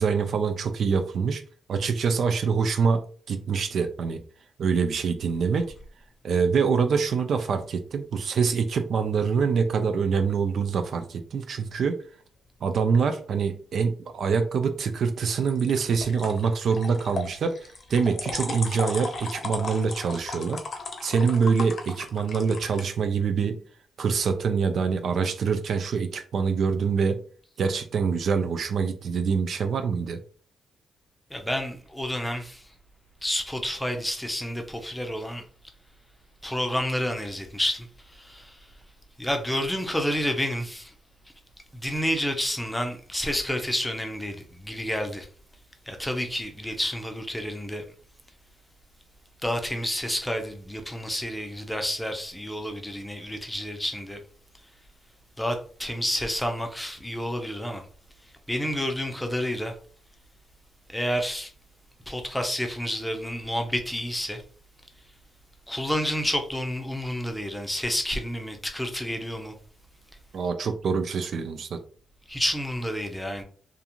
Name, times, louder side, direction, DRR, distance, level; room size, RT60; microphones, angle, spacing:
voice 1, 0.0-1.4 1.7-3.0 3.3-4.2 4.6-5.7 6.2-12.0 12.6-20.6 21.0-23.6 24.0-27.2 27.6-30.2 70.3-71.8, right 5 dB, 65° right, 0.3 m, -25 dB
sound 1, 5.2-5.9 15.5-22.8, left 3 dB, 50° left, 0.6 m, -36 dB
voice 2, 31.3-32.6 33.2-35.4 36.4-38.7 39.2-40.9 41.7-45.3 45.9-47.8 49.4-54.2 55.4-57.9 58.5-59.7 60.9-61.5 62.1-64.4 65.7-69.5 72.3-73.4, equal, 5° left, 0.6 m, -29 dB
2.5 x 2.3 x 2.9 m
cardioid pair, 75°, 0 cm